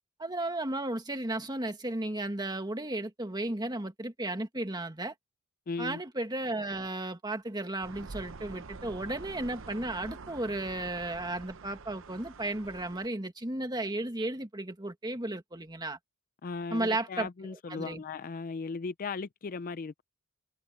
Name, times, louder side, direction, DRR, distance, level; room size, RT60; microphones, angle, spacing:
voice 1, 0.2-5.1 5.8-16.0 16.7-18.0, right 2 dB, 20° right, 1.8 m, -34 dB
voice 2, 5.7-6.0 16.4-20.0, left 4 dB, 40° left, 0.4 m, -37 dB
sound 1, 7.8-13.1, right 4 dB, 60° right, 0.8 m, -46 dB
head